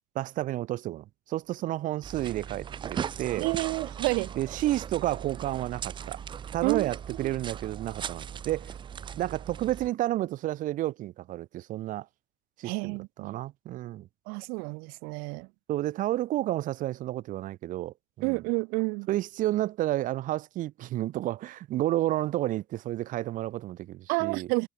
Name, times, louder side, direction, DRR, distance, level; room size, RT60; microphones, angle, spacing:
voice 1, 0.1-3.5 4.4-6.2 6.5-8.8 9.2-12.1 12.6-14.1 15.7-18.4 19.1-24.5, right 15 dB, 65° right, 2.2 m, -31 dB
sound 1, 2.0-9.9, right 8 dB, 35° right, 0.5 m, -38 dB
voice 2, 3.4-4.3 6.6-6.9 7.2-7.3 12.6-13.4 14.3-15.5 18.2-19.1 24.1-24.7, right 29 dB, 85° right, 1.2 m, -29 dB
cardioid pair, 105°, 15 cm